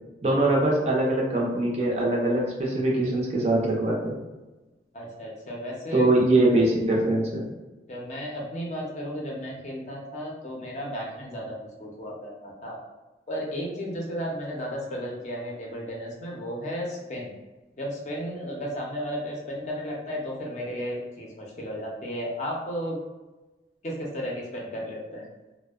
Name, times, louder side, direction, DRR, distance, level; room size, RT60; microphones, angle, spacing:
voice 1, 0.2-4.1 5.9-7.5, right 2 dB, 35° right, -3 dB, 0.5 m, -23 dB
voice 2, 4.9-6.3 7.9-12.8 13.3-17.3 17.8-23.0 23.8-25.2, equal, 40° left, -2 dB, 0.5 m, -34 dB
2.6 x 2.0 x 2.3 m, 1.1 s
head